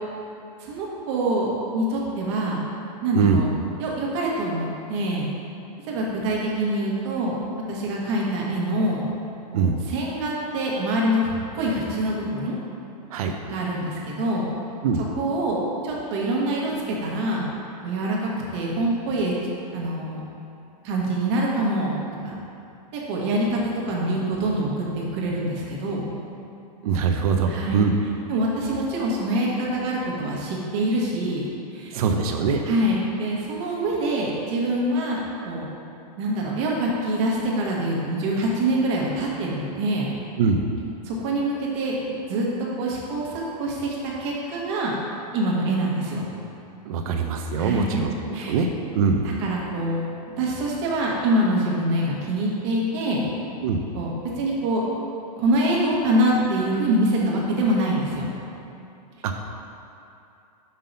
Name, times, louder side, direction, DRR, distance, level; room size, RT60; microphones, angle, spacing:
voice 1, 0.6-2.6 3.0-3.5 3.8-5.3 5.9-7.4 7.7-9.0 9.5-12.5 13.5-14.4 15.0-15.6 15.8-17.5 17.8-19.3 19.7-20.2 20.8-21.9 22.2-22.3 22.9-26.1 27.5-27.8 28.3-32.0 32.6-35.7 36.2-40.1 41.0-41.9 42.3-42.5 42.8-44.9 45.3-46.2 47.6-48.5 49.2-50.0 50.4-53.3 53.9-54.1 54.4-54.8 55.4-58.3, right 1 dB, 45° right, -3 dB, 1.3 m, -25 dB
voice 2, 26.8-27.9 31.9-32.6 40.4-40.7 46.9-48.7 48.9-49.2 53.6-53.8, right 5 dB, 65° right, 3 dB, 0.5 m, -22 dB
5.5 x 3.8 x 5.3 m, 2.7 s
supercardioid pair, 155°, 20 cm